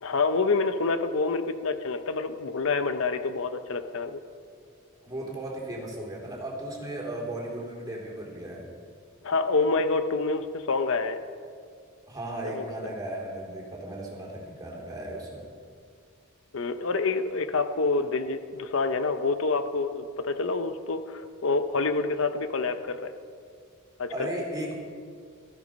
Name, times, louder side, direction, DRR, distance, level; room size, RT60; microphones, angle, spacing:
voice 1, 0.0-4.2 9.2-11.2 12.4-12.9 16.5-23.1 24.0-24.1, left 3 dB, 65° left, 10 dB, 0.7 m, -27 dB
voice 2, 5.0-8.7 12.1-15.5 24.1-24.8, right 1 dB, 15° right, -2 dB, 3.7 m, -36 dB
17.5 x 14.5 x 5.3 m, 2.2 s
head